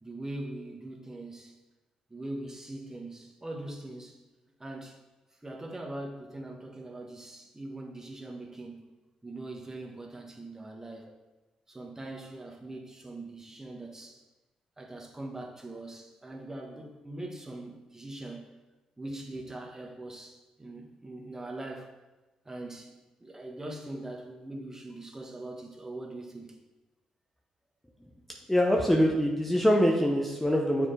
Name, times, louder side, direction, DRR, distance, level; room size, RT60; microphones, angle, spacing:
voice 1, 0.0-1.5 2.1-4.2 4.6-4.9 5.4-8.9 9.2-11.1 11.7-14.2 14.8-18.5 19.0-21.9 22.4-22.9 23.2-26.6, right 2 dB, 20° right, 0 dB, 1.3 m, -41 dB
voice 2, 28.5-30.9, equal, 5° left, 0 dB, 0.8 m, -24 dB
7.1 x 4.3 x 3.3 m, 1.1 s
supercardioid pair, 50°, 2 cm